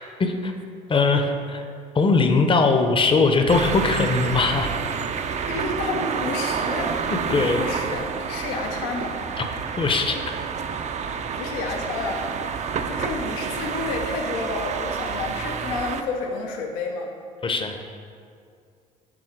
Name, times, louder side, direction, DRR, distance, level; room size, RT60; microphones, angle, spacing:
voice 1, 0.2-0.5 0.9-1.6 1.9-4.7 7.3-7.6 9.4-9.5 9.8-10.2 17.4-17.8, left 3 dB, 30° left, 5 dB, 0.7 m, -20 dB
sound 1, 3.5-16.0, right 6 dB, 40° right, 0.4 m, -29 dB
voice 2, 5.5-6.9 7.4-9.1 11.3-12.2 12.5-17.1, left 3 dB, 80° left, 2 dB, 0.7 m, -30 dB
6.2 x 4.1 x 4.6 m, 2.3 s
hypercardioid pair, 65°, 18 cm